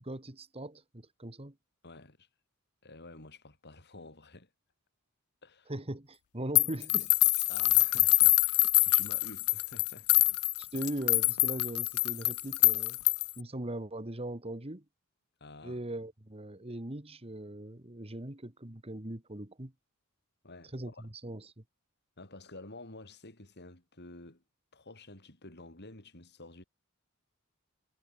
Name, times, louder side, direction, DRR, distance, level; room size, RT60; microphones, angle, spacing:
voice 1, 0.0-1.6 5.7-7.1 10.6-13.0 13.4-14.8 15.6-19.7 20.7-21.6, right 1 dB, 25° right, 2.1 m, -40 dB
voice 2, 1.8-2.3 2.8-4.5 5.4-5.7 7.5-10.3 15.4-15.8 20.4-21.1 22.2-24.4 24.7-26.6, left 2 dB, 50° left, 4.8 m, -50 dB
sound 1, 6.6-13.4, left 24 dB, 80° left, 0.4 m, -25 dB
head